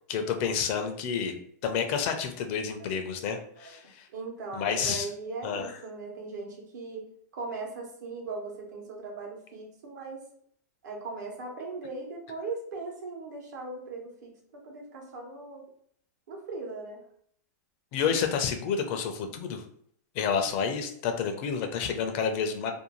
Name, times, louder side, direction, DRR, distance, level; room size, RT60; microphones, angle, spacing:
voice 1, 0.1-1.4 1.6-4.1 4.5-5.1 5.4-5.8 17.9-19.6 20.1-22.7, left 6 dB, 45° left, 5 dB, 0.4 m, -29 dB
voice 2, 4.1-7.0 7.3-10.2 10.8-15.6 16.3-17.0, right 3 dB, 80° right, 0 dB, 0.9 m, -39 dB
2.6 x 2.2 x 2.9 m, 0.64 s
supercardioid pair, 145°, 9 cm